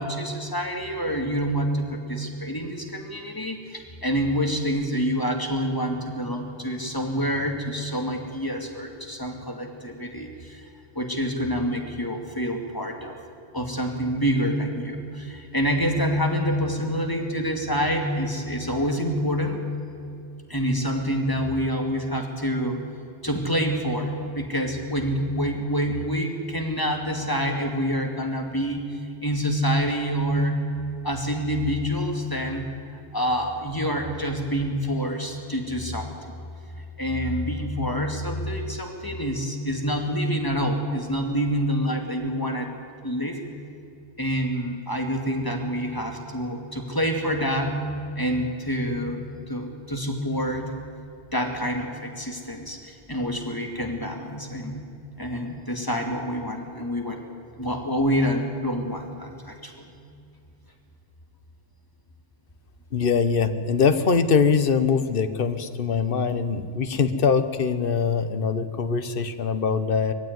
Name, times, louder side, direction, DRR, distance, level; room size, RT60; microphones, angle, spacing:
voice 1, 0.0-10.6 10.9-13.2 13.5-19.7 20.5-22.8 23.2-30.6 31.0-32.7 33.1-36.4 37.0-42.7 43.0-43.4 44.2-47.9 48.2-50.7 51.3-57.2 57.6-60.0, equal, 20° left, 2 dB, 2.5 m, -27 dB
voice 2, 62.9-70.1, left 5 dB, 50° left, 10 dB, 1.2 m, -23 dB
22.5 x 15.0 x 9.5 m, 2.6 s
omnidirectional pair, 1.2 m